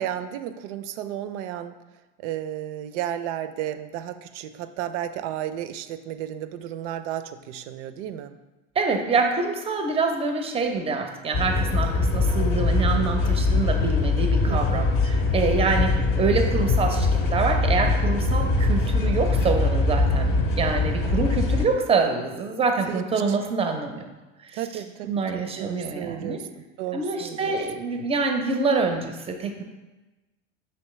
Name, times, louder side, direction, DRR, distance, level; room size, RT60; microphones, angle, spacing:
voice 1, 0.0-1.8 2.2-8.4 14.4-14.9 22.9-23.0 23.3-23.4 24.5-26.5 26.8-27.6, right 11 dB, 65° right, 10 dB, 0.5 m, -33 dB
voice 2, 8.7-24.1 24.4-24.6 25.0-26.4 26.9-29.6, right 4 dB, 15° right, 5 dB, 0.5 m, -26 dB
sound 1, 11.3-21.7, left 3 dB, 35° left, 0.6 m, -22 dB
5.7 x 3.0 x 3.1 m, 1.1 s
hypercardioid pair, 95°, 39 cm